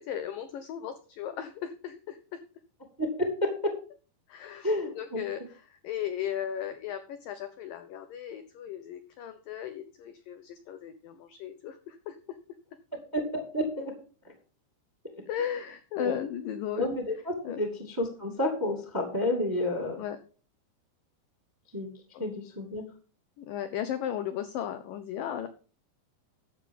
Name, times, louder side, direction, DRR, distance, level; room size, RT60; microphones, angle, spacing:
voice 1, 0.0-2.4 4.3-4.7 5.0-12.2 15.3-16.9 17.4-17.6 20.0-20.2 23.4-25.5, left 10 dB, 85° left, 10 dB, 1.9 m, -36 dB
voice 2, 3.0-3.7 4.6-5.2 13.1-13.9 14.2-14.3 16.0-16.1 16.7-20.0 21.7-21.9 22.2-22.8, left 1 dB, 10° right, 4 dB, 1.2 m, -30 dB
12.0 x 7.7 x 5.5 m, 0.38 s
omnidirectional pair, 5.0 m